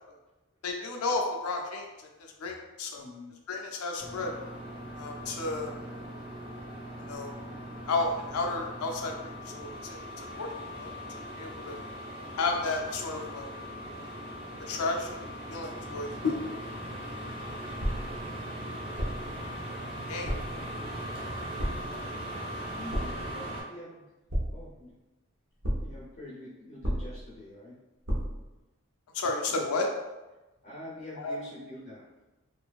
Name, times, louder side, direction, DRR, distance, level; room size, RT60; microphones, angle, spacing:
voice 1, 0.6-2.1 2.4-3.1 3.5-4.3 5.0-5.7 7.1-7.3 7.9-10.0 10.4-10.5 10.8-10.9 11.4-11.8 12.4-13.5 14.0-14.1 14.7-15.1 15.5-16.4 20.1-20.3 29.1-29.9 31.2-31.4, left 3 dB, 85° left, 1 dB, 0.4 m, -32 dB
voice 2, 3.0-3.3 22.7-24.1 24.5-24.9 25.8-27.8 30.6-32.1, left 1 dB, 35° left, -8 dB, 0.6 m, -45 dB
sound 1, 4.0-23.6, equal, 25° right, 0.6 m, -40 dB
sound 2, 17.8-18.3 19.0-19.4 20.2-20.6 21.6-22.0 22.9-23.3 24.3-24.9 25.6-26.1 26.8-27.4 28.1-28.5, equal, 60° right, 0.6 m, -32 dB
2.6 x 2.3 x 2.3 m, 1.1 s
head